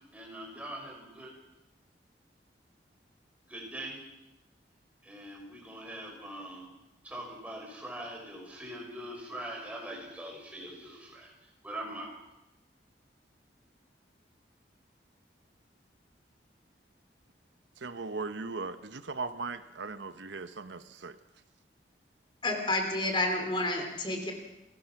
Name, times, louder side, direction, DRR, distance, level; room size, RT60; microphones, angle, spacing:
voice 1, 0.1-1.3 3.5-4.0 5.0-6.7 7.0-11.3 11.6-12.1, right 1 dB, 10° right, -1 dB, 5.5 m, -42 dB
voice 2, 17.8-21.2, right 4 dB, 85° right, 11 dB, 1.0 m, -38 dB
voice 3, 22.4-24.3, left 2 dB, 25° left, 3 dB, 3.0 m, -30 dB
29.5 x 16.0 x 6.0 m, 0.96 s
head